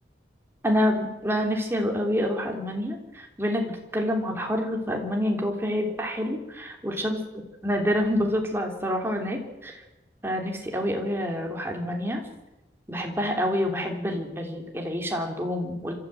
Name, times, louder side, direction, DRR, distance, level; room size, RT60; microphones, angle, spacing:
voice 1, 0.6-7.2 7.6-9.8 10.2-12.2 12.9-15.9, equal, 15° right, 1 dB, 3.2 m, -27 dB
26.0 x 13.5 x 7.8 m, 1.0 s
head